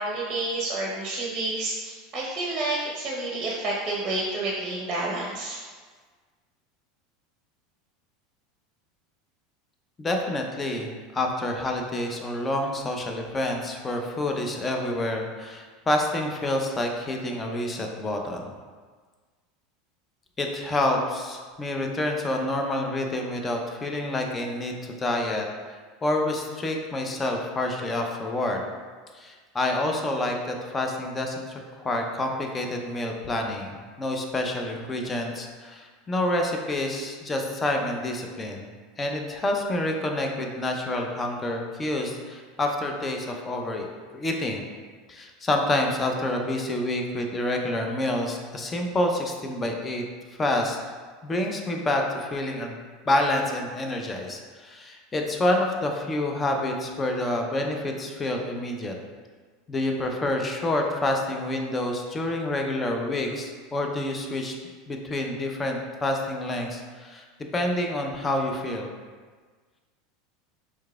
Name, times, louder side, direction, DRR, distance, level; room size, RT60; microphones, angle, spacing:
voice 1, 0.0-5.6, right 2 dB, 30° right, -4 dB, 0.8 m, -29 dB
voice 2, 10.0-18.5 20.4-25.5 26.0-28.6 29.1-38.7 39.0-43.9 44.1-44.6 45.1-50.0 50.4-50.8 51.2-52.8 53.1-58.9 59.7-64.6 64.9-67.2 67.5-68.9, left 1 dB, 20° left, 2 dB, 0.6 m, -28 dB
4.6 x 3.5 x 2.3 m, 1.5 s
figure-of-eight pair, 80°, 0 cm